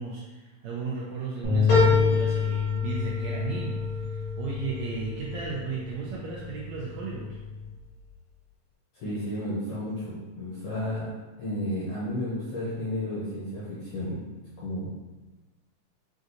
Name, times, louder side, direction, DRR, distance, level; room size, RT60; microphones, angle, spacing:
voice 1, 0.0-7.4, right 4 dB, 85° right, -4 dB, 1.5 m, -35 dB
sound 1, 1.4-7.7, left 6 dB, 65° right, 1.5 m, -29 dB
sound 2, 1.7-6.4 6.9-7.6 8.0-8.1, left 2 dB, 90° left, 2.9 m, -30 dB
voice 2, 8.9-11.1 11.4-14.2 14.6-14.9, left 1 dB, 70° left, -9 dB, 1.4 m, -32 dB
6.0 x 2.4 x 2.6 m, 1.2 s
omnidirectional pair, 3.6 m